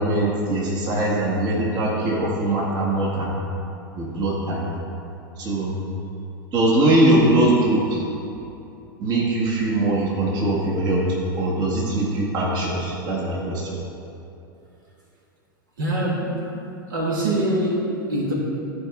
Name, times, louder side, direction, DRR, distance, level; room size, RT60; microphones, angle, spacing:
voice 1, 0.0-3.3 3.9-4.7 5.4-5.8 6.5-8.0 9.0-11.1 11.4-13.8, right 1 dB, 35° right, -4 dB, 1.7 m, -21 dB
voice 2, 15.8-16.5 16.9-18.3, right 1 dB, 65° right, -3 dB, 1.8 m, -24 dB
13.5 x 4.8 x 3.6 m, 2.8 s
figure-of-eight pair, 95°, 12 cm